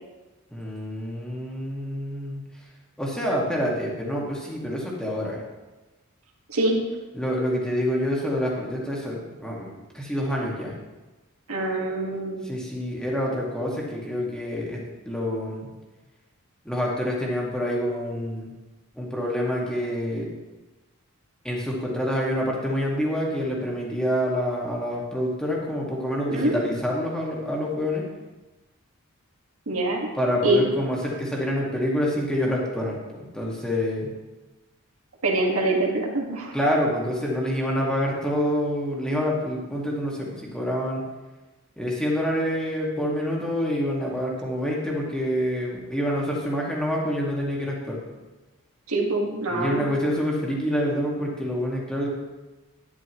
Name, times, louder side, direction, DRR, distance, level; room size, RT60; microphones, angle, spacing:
voice 1, 0.5-2.4 3.0-5.4 7.1-10.7 12.4-15.7 16.6-18.5 19.0-20.3 21.4-28.0 30.2-34.1 36.5-41.0 41.8-48.0 49.5-52.1, equal, 5° left, -4 dB, 2.0 m, -27 dB
voice 2, 11.5-12.4 26.3-26.6 29.7-30.1 30.4-30.7 35.2-36.5 48.9-49.9, right 2 dB, 85° right, -1 dB, 1.9 m, -24 dB
11.0 x 10.5 x 3.1 m, 1.1 s
head